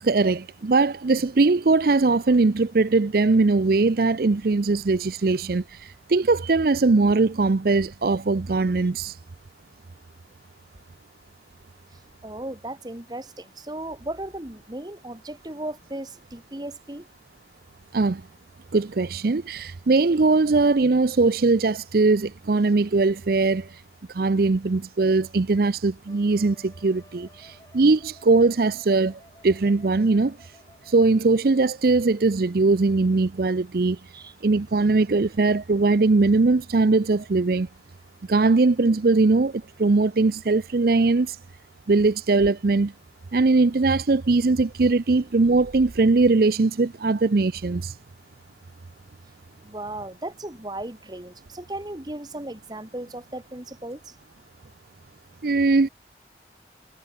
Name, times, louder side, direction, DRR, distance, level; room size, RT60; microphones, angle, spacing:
voice 1, 0.0-9.2 17.9-18.2 18.7-23.7 24.1-30.4 30.9-34.0 34.4-37.7 38.3-41.4 41.9-42.9 43.3-47.9 55.4-55.9, right 3 dB, 55° right, 0.5 m, -20 dB
voice 2, 11.9-17.1 34.1-34.3 49.6-54.1, right 1 dB, 20° right, 1.4 m, -36 dB
Wind instrument woodwind instrument, 26.1-31.6, left 1 dB, 20° left, 7.5 m, -55 dB
head